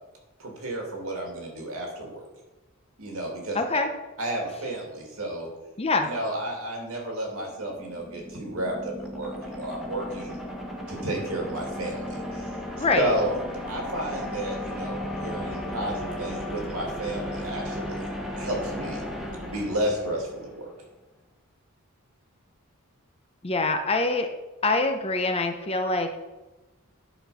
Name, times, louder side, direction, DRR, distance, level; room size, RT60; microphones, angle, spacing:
voice 1, 0.4-2.2 3.0-3.6 4.2-5.5 6.0-10.4 10.9-12.5 13.0-13.4 13.7-18.1 18.4-19.0 19.4-20.7, right 1 dB, 75° right, 0 dB, 2.5 m, -32 dB
voice 2, 3.5-3.9 5.8-6.1 12.8-13.1 23.4-24.3 24.6-26.2, left 3 dB, 25° left, 6 dB, 0.7 m, -24 dB
sound 1, 7.4-20.6, left 1 dB, ahead, 1.2 m, -35 dB
10.5 x 4.4 x 5.6 m, 1.1 s
head